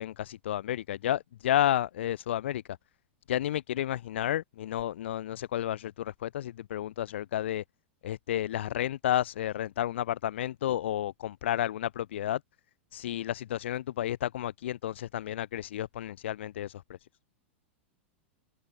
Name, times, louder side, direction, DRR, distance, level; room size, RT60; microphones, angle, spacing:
voice 1, 0.0-2.6 3.3-7.6 8.0-12.4 12.9-16.8, left 12 dB, 70° left, 2.7 m, -31 dB
open air
hypercardioid pair, 105°, 7 cm